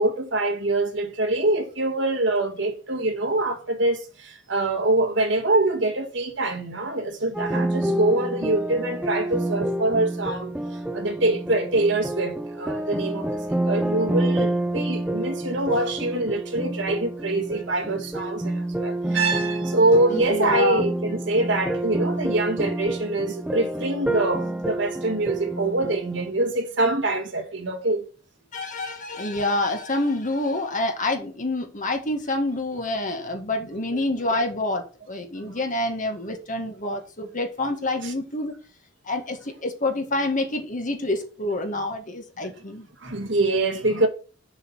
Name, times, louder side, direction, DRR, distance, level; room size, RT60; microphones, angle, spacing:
voice 1, 0.0-28.1 33.9-34.0 35.4-35.6 38.0-38.1 42.4-42.5 43.0-44.1, right 2 dB, 65° right, 1.9 m, -24 dB
sound 1, 7.3-26.3, right 1 dB, 5° right, 0.6 m, -28 dB
voice 2, 20.1-20.9 28.5-38.5 39.1-42.9, left 2 dB, 45° left, 1.9 m, -27 dB
6.9 x 5.7 x 5.7 m
head